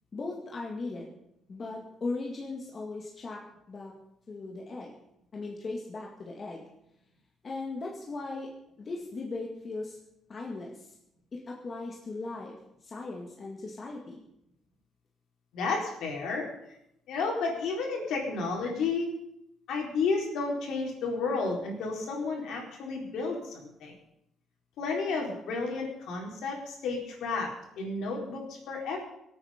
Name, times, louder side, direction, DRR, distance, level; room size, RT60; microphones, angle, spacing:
voice 1, 0.1-1.1 1.5-3.4 3.7-3.9 4.3-4.9 5.3-6.7 7.4-8.5 8.8-10.0 10.3-10.9 11.3-12.6 12.8-14.2, left 3 dB, 25° left, -1 dB, 1.9 m, -38 dB
voice 2, 15.5-16.4 17.1-19.1 19.7-23.9 24.8-27.5 27.8-29.0, left 4 dB, 65° left, 0 dB, 4.1 m, -32 dB
24.0 x 8.8 x 5.1 m, 0.79 s
cardioid pair, 170°, 0 cm